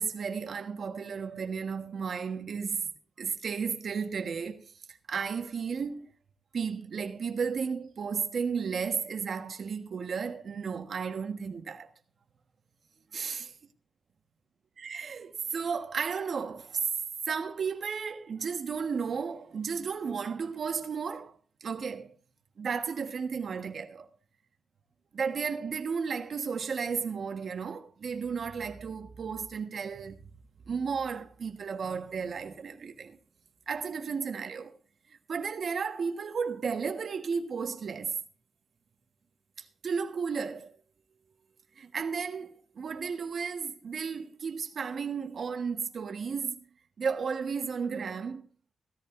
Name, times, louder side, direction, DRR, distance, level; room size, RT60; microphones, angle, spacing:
voice 1, 0.0-2.9 3.2-6.1 6.5-11.9 13.1-13.5 14.8-16.9 17.2-22.1 22.6-24.1 25.1-30.2 30.7-33.2 33.7-34.8 35.1-38.2 39.6-40.7 41.8-46.6 47.0-48.5, right 6 dB, 60° right, 1.4 m, -33 dB
16.0 x 14.0 x 2.6 m
wide cardioid pair, 115°, 0 cm